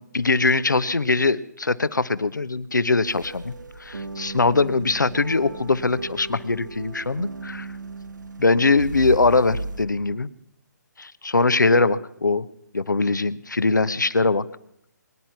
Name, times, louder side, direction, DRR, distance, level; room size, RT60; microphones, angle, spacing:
voice 1, 0.0-3.5 3.8-7.7 8.4-10.3 11.0-12.5 12.7-14.4, left 3 dB, 80° left, 17 dB, 1.0 m, -21 dB
sound 1, 3.1-9.9, right 2 dB, 75° right, 1.5 m, -35 dB
23.5 x 10.5 x 5.9 m, 0.74 s
figure-of-eight pair, 140°, 10 cm